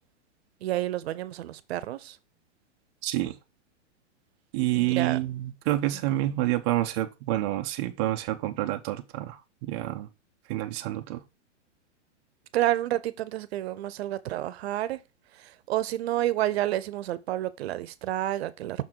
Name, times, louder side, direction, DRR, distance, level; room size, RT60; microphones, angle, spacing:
voice 1, 0.6-2.2 4.7-5.2 12.5-15.0 15.3-18.8, right 14 dB, 60° right, 0.7 m, -29 dB
voice 2, 3.0-3.4 4.5-10.1 10.5-11.2, right 15 dB, 25° right, 0.4 m, -28 dB
5.9 x 3.7 x 4.4 m
hypercardioid pair, 140°, 36 cm